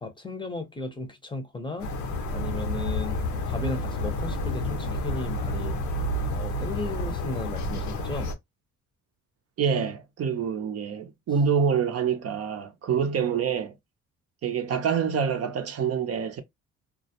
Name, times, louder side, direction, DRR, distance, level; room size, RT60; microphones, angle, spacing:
voice 1, 0.0-1.9 2.3-3.2 3.5-5.8 6.3-8.3 12.9-13.0, left 2 dB, 15° left, 0.6 m, -35 dB
sound 1, 1.8-8.3, left 1 dB, 70° left, 0.7 m, -30 dB
voice 2, 9.6-13.7 14.4-16.4, right 7 dB, 55° right, 0.6 m, -26 dB
2.2 x 2.0 x 2.7 m
cardioid pair, 90°, 30 cm